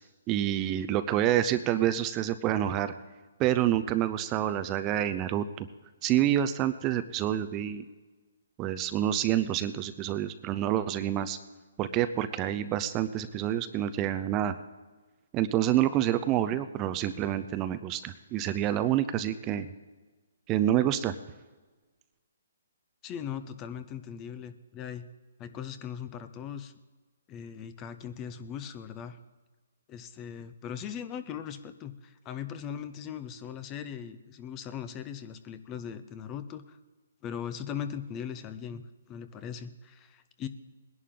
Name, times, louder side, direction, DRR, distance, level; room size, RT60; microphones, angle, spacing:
voice 1, 0.3-2.9 3.4-5.7 6.0-7.8 8.6-11.4 11.8-14.5 15.3-19.7 20.5-21.1, right 11 dB, 25° right, 11 dB, 0.5 m, -28 dB
voice 2, 23.0-25.1 25.4-26.7 27.3-29.2 29.9-36.8 37.2-38.8 39.1-40.5, left 8 dB, 20° left, 11 dB, 0.7 m, -39 dB
20.0 x 11.0 x 3.8 m, 1.3 s
hypercardioid pair, 150°, 0 cm